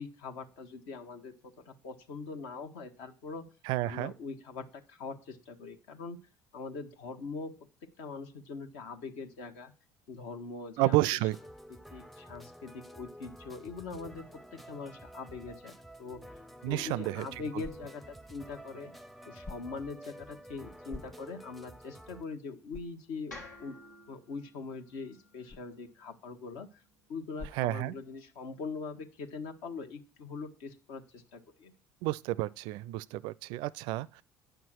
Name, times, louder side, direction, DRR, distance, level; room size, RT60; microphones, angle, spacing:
voice 1, 0.0-3.5 3.8-6.2 6.5-7.5 8.0-9.7 10.1-11.1 11.9-15.7 16.0-16.4 16.7-18.9 19.2-23.8 24.1-26.8 27.1-31.7, left 4 dB, 65° left, 1.1 m, -42 dB
voice 2, 3.6-4.1 10.8-11.4 16.6-17.3 27.5-27.9 32.0-34.2, right 17 dB, 60° right, 0.4 m, -30 dB
sound 1, 11.3-22.2, equal, ahead, 0.6 m, -50 dB
sound 2, 22.2-28.5, left 3 dB, 30° left, 0.9 m, -54 dB
sound 3, 23.3-27.5, left 2 dB, 90° left, 1.9 m, -53 dB
9.2 x 5.9 x 6.0 m
figure-of-eight pair, 60°, 9 cm